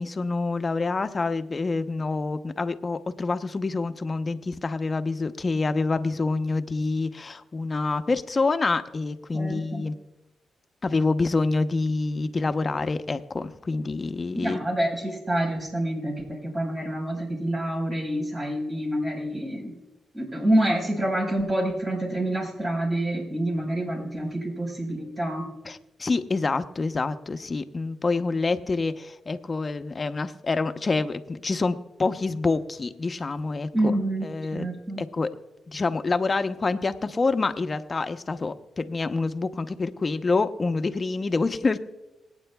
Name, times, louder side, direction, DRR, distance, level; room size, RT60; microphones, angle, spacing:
voice 1, 0.0-9.9 10.8-14.6 25.6-34.0 34.2-34.7 35.0-35.3 35.7-41.8, left 3 dB, 40° left, 10 dB, 0.8 m, -27 dB
voice 2, 9.3-9.8 14.4-19.7 20.1-25.5 33.7-34.3 34.5-35.0, right 1 dB, 35° right, 0 dB, 4.5 m, -27 dB
26.5 x 9.0 x 2.3 m, 1.0 s
cardioid pair, 60°, 0 cm